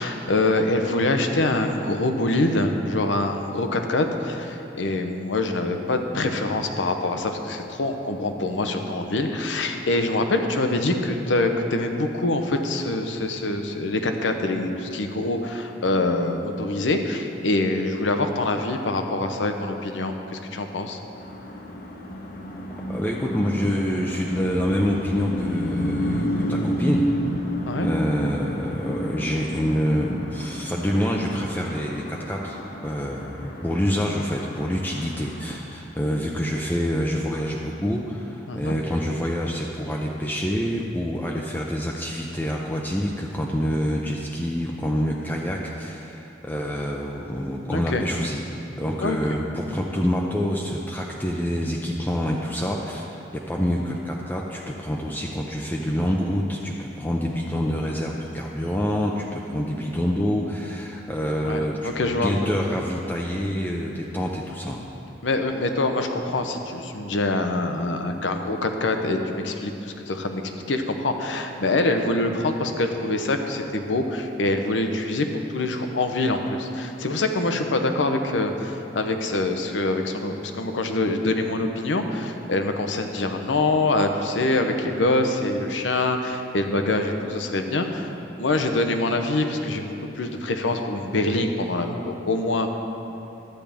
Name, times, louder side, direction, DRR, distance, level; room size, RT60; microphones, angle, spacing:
voice 1, 0.0-21.0 27.7-27.9 38.5-38.8 47.7-48.0 49.0-49.2 61.4-62.3 65.2-70.4 70.7-88.1 88.4-92.7, left 2 dB, 90° left, 5 dB, 0.7 m, -25 dB
sound 1, 21.1-35.6, equal, 55° left, 0.9 m, -30 dB
voice 2, 22.9-27.0 27.8-32.6 32.8-48.4 48.8-64.8, equal, 10° left, -2 dB, 0.5 m, -27 dB
11.5 x 8.7 x 3.5 m, 2.9 s
head